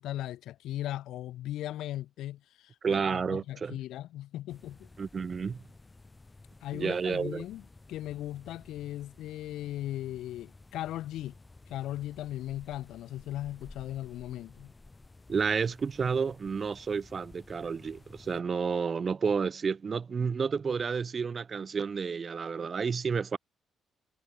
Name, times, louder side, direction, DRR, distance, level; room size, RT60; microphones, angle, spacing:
voice 1, 0.0-4.9 6.6-11.4 11.7-14.7, left 13 dB, 85° left, 0.5 m, -38 dB
voice 2, 2.8-3.7 5.0-5.6 6.7-7.5 15.3-23.4, right 5 dB, 40° right, 0.5 m, -30 dB
sound 1, 4.5-18.4, left 3 dB, 20° left, 1.4 m, -54 dB
cardioid pair, 90°, 0 cm